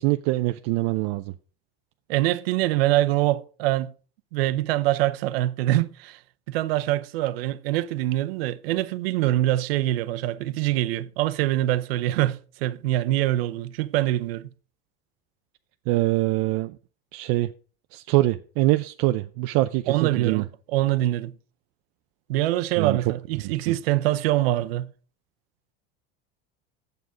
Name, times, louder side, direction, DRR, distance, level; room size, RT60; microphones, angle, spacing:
voice 1, 0.0-1.3 15.9-16.8 17.1-17.5 17.9-20.4 22.8-23.0 23.4-23.6, right 18 dB, 55° right, 0.5 m, -24 dB
voice 2, 2.1-3.9 4.3-6.2 6.5-14.5 19.9-20.4 20.7-21.3 22.3-24.9, right 15 dB, 85° right, 0.8 m, -24 dB
9.5 x 8.0 x 5.0 m
supercardioid pair, 140°, 29 cm